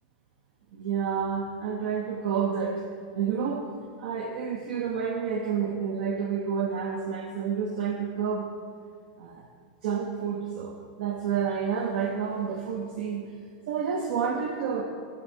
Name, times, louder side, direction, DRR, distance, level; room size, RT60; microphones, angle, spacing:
voice 1, 0.7-2.8 3.1-3.7 4.0-8.5 9.2-9.5 9.8-13.3 13.7-14.8, right 7 dB, 75° right, 3 dB, 0.5 m, -29 dB
7.6 x 6.1 x 2.7 m, 2.2 s
supercardioid pair, 130°, 5 cm